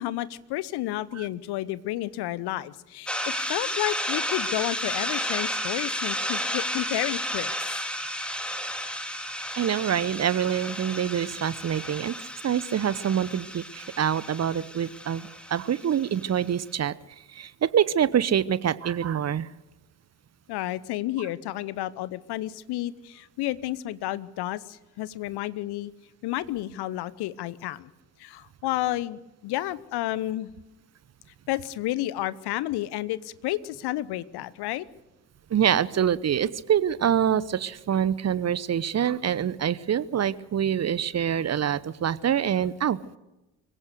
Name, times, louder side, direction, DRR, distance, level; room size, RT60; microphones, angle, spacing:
voice 1, 0.0-7.7 20.5-25.9 26.2-27.9 28.2-30.5 31.5-34.9, left 15 dB, 55° left, 18 dB, 1.0 m, -31 dB
sound 1, 3.1-16.4, equal, ahead, 3.5 m, -32 dB
voice 2, 9.6-12.2 12.4-16.9 17.3-19.5 35.5-43.2, right 9 dB, 35° right, 19 dB, 0.9 m, -25 dB
24.5 x 16.5 x 6.6 m, 0.99 s
figure-of-eight pair, 45°, 47 cm